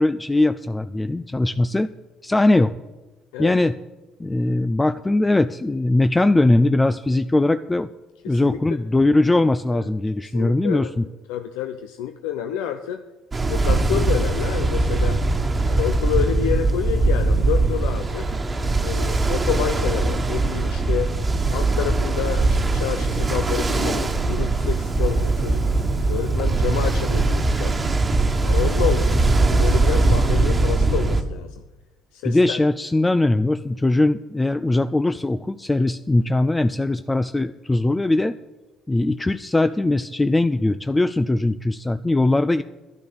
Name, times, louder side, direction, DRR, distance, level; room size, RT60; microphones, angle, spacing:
voice 1, 0.0-1.9 2.2-2.7 3.4-3.8 4.2-7.9 8.3-11.0 32.2-38.3 38.9-42.6, left 2 dB, 15° left, 12 dB, 0.5 m, -20 dB
voice 2, 8.2-8.6 9.7-9.8 10.2-10.9 11.3-13.0 13.5-15.2 15.7-18.3 18.8-21.1 21.5-25.6 26.1-27.8 28.4-31.6 32.1-32.6, left 10 dB, 85° left, 7 dB, 0.7 m, -28 dB
Ocean, 13.3-31.2, right 2 dB, 25° right, 1.5 m, -21 dB
sound 1, 18.7-29.0, right 5 dB, 65° right, 1.3 m, -34 dB
11.0 x 10.5 x 6.8 m, 1.1 s
supercardioid pair, 75°, 0 cm